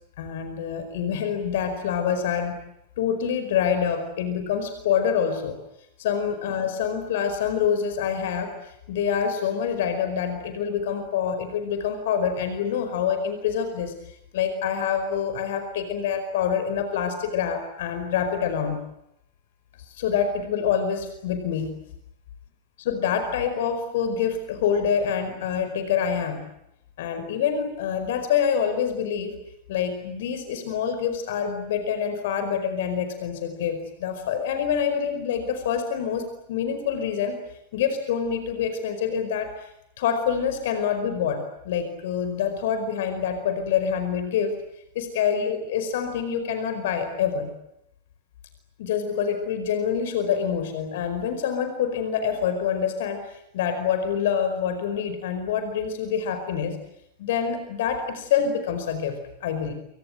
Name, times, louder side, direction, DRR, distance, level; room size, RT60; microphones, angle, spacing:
voice 1, 0.2-2.5 3.0-5.6 6.0-13.9 14.3-18.8 20.0-21.7 22.8-26.4 27.0-29.3 29.7-37.4 37.7-39.7 40.0-44.5 44.9-47.5 48.8-56.8 57.2-59.7, left 7 dB, 55° left, 8 dB, 4.9 m, -26 dB
28.5 x 26.0 x 7.9 m, 0.81 s
figure-of-eight pair, 90°, 0 cm